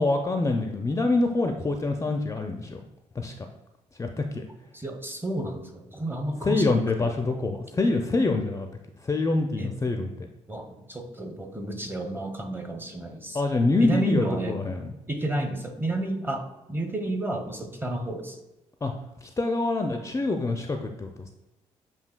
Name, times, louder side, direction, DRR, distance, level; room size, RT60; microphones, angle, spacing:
voice 1, 0.0-2.8 3.2-3.3 4.0-4.5 6.4-8.7 9.0-10.1 13.3-14.9 18.8-18.9 19.4-21.3, left 3 dB, 20° left, 4 dB, 0.4 m, -25 dB
voice 2, 4.7-6.7 7.0-7.1 9.6-9.7 10.5-13.4 13.8-14.5 15.1-18.4, right 1 dB, 15° right, 5 dB, 0.7 m, -31 dB
7.2 x 2.7 x 2.2 m, 1.0 s
figure-of-eight pair, 40°, 15 cm